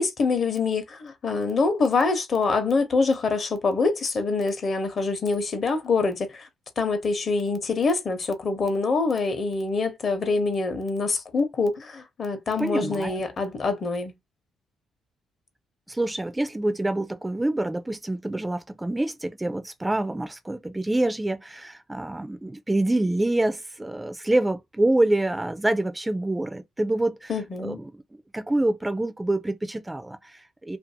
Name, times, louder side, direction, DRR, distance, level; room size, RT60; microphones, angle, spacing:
voice 1, 0.0-6.5 6.8-14.1 27.3-27.8, left 4 dB, 45° left, 0.8 m, -25 dB
voice 2, 12.6-13.2 15.9-27.3 27.6-27.9 28.3-30.8, right 1 dB, 10° right, 0.4 m, -26 dB
2.6 x 2.3 x 2.6 m
cardioid pair, 90°, 0 cm